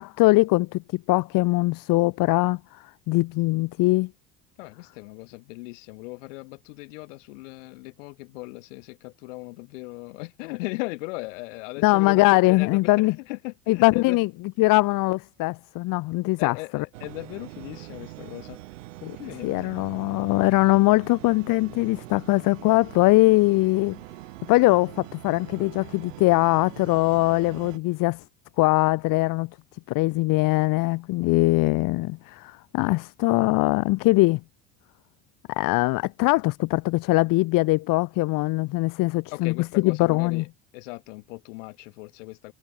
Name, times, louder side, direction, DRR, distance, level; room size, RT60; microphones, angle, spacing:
voice 1, 0.0-4.1 11.8-13.1 13.7-14.3 14.6-16.8 19.4-24.0 24.5-28.2 28.6-29.5 29.9-34.4 35.5-40.4, left 21 dB, 60° left, 0.9 m, -22 dB
voice 2, 4.6-14.2 16.4-18.6 19.0-19.7 39.3-40.5 40.7-42.5, left 25 dB, 85° left, 1.8 m, -37 dB
sound 1, 16.9-27.8, right 18 dB, 90° right, 2.2 m, -43 dB
supercardioid pair, 80°, 37 cm